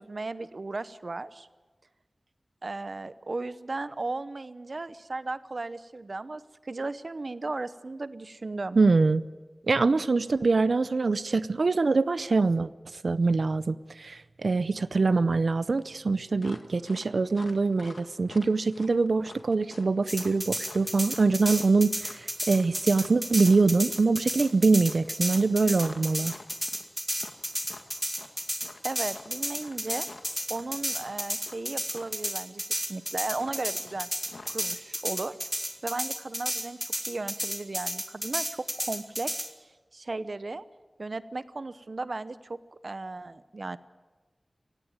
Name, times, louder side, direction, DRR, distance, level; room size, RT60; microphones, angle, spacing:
voice 1, 0.0-1.5 2.6-8.8 28.8-30.1 30.5-34.1 34.4-35.4 35.8-39.3 39.9-40.6 41.0-42.6 42.8-43.8, right 3 dB, 65° right, 14 dB, 0.9 m, -35 dB
voice 2, 8.8-9.2 9.7-12.7 13.0-26.3, right 3 dB, 85° right, 15 dB, 0.5 m, -24 dB
sound 1, 16.4-31.6 31.9-32.2 33.3-34.7, left 3 dB, 80° left, 1.9 m, -48 dB
sound 2, 20.1-39.5, equal, ahead, 2.2 m, -32 dB
17.5 x 16.5 x 9.4 m, 1.3 s
wide cardioid pair, 50°, 0 cm